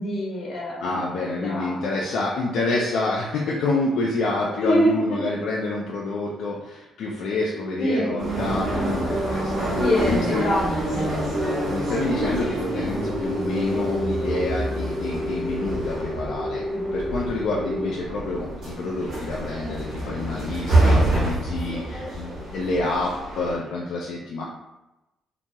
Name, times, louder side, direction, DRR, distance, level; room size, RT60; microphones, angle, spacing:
voice 1, 0.0-1.0 1.3-2.0 4.6-5.2 7.8-8.2 9.8-11.0 16.7-16.8, equal, 55° left, -4 dB, 1.0 m, -25 dB
voice 2, 0.8-9.7 10.1-10.5 11.7-16.6 16.9-24.4, left 2 dB, 75° left, -4 dB, 0.4 m, -28 dB
sound 1, 8.2-23.6, right 1 dB, 65° right, 1.4 m, -27 dB
sound 2, 12.9-17.9, left 1 dB, 5° left, 0.6 m, -30 dB
2.9 x 2.2 x 2.7 m, 0.98 s
cardioid pair, 90°, 0 cm